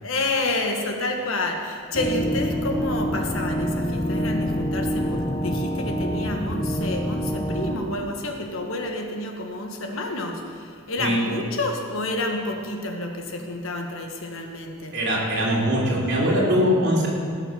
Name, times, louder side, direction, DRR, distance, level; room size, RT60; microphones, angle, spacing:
voice 1, 0.0-15.0, left 2 dB, 75° left, 3 dB, 1.4 m, -29 dB
sound 1, 1.9-7.8, equal, 20° left, 0.7 m, -26 dB
voice 2, 14.9-17.1, equal, 50° right, -5 dB, 3.3 m, -21 dB
16.5 x 6.7 x 6.3 m, 2.2 s
head